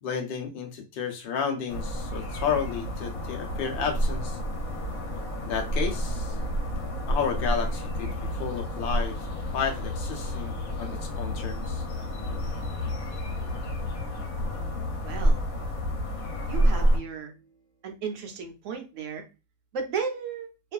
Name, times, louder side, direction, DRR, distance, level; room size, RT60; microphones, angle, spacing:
voice 1, 0.0-4.4 5.4-6.3 7.0-9.2 9.5-11.8, left 6 dB, 55° left, 3 dB, 0.6 m, -32 dB
sound 1, 1.7-17.0, equal, 90° left, 1.1 m, -29 dB
sound 2, 2.9-18.4, right 2 dB, 25° right, 0.9 m, -52 dB
voice 2, 15.0-15.4 16.5-17.3 17.8-19.2 19.7-20.5, right 5 dB, 70° right, 5 dB, 0.9 m, -34 dB
2.4 x 2.4 x 2.2 m, 0.28 s
omnidirectional pair, 1.4 m